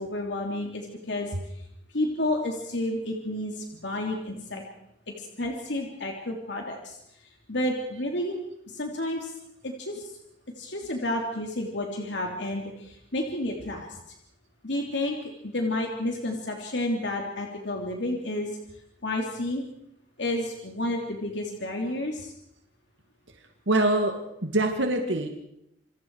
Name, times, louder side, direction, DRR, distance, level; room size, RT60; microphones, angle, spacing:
voice 1, 0.0-1.3 1.9-4.6 5.2-7.0 7.5-8.4 8.7-9.3 9.6-10.1 10.6-14.0 14.6-18.5 19.0-19.6 20.2-22.3, left 1 dB, 70° left, 1 dB, 3.1 m, -30 dB
voice 2, 23.7-25.3, right 1 dB, 80° right, 4 dB, 2.1 m, -24 dB
28.5 x 25.5 x 4.8 m, 0.80 s
head